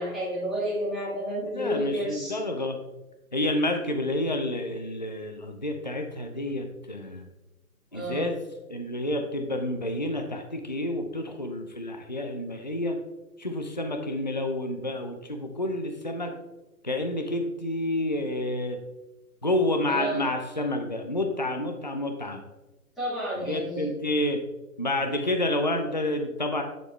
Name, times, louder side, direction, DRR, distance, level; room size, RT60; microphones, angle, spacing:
voice 1, 0.0-2.4 7.9-8.3 19.9-20.3 23.0-23.9, equal, ahead, -13 dB, 2.3 m, -31 dB
voice 2, 1.5-2.8 3.3-7.3 7.9-8.4 8.7-13.0 13.4-16.3 16.8-18.8 19.4-22.4 23.4-24.4 24.8-26.6, left 1 dB, 35° left, 5 dB, 0.4 m, -29 dB
9.8 x 4.2 x 3.1 m, 1.0 s
hypercardioid pair, 155°, 45 cm